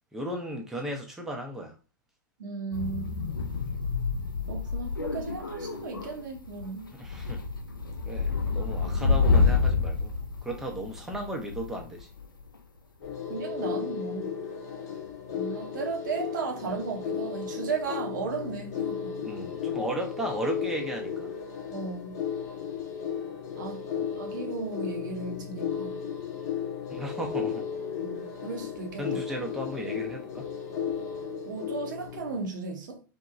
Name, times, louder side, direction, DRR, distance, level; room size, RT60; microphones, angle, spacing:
voice 1, 0.1-1.8 6.9-7.4 8.1-10.1 10.4-12.1 19.2-21.3 23.9-24.0 26.9-27.6 29.0-30.5, right 1 dB, 5° right, 0.5 m, -35 dB
voice 2, 2.4-3.3 4.5-6.9 13.3-14.3 15.3-19.3 21.7-22.2 23.6-23.8 24.2-26.0 28.0-29.2 31.5-33.0, right 4 dB, 65° right, 0.7 m, -35 dB
sound 1, 2.7-12.3, left 4 dB, 85° left, 0.4 m, -28 dB
sound 2, 13.0-32.4, left 7 dB, 50° left, 0.7 m, -34 dB
2.8 x 2.1 x 2.4 m
figure-of-eight pair, 95°, 11 cm